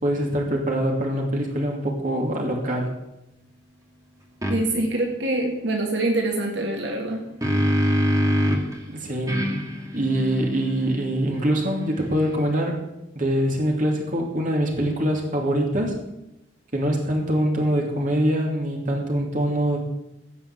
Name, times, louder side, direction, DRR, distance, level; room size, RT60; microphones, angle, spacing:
voice 1, 0.0-2.9 8.9-9.4 9.9-12.8 13.1-16.0 16.7-19.8, right 1 dB, 45° right, 0 dB, 2.6 m, -24 dB
sound 1, 4.4-4.6 7.0-8.8 9.3-12.6, equal, 20° right, 2.4 m, -25 dB
voice 2, 4.5-7.2, right 2 dB, 75° right, 1 dB, 2.1 m, -25 dB
17.0 x 5.7 x 8.2 m, 0.90 s
head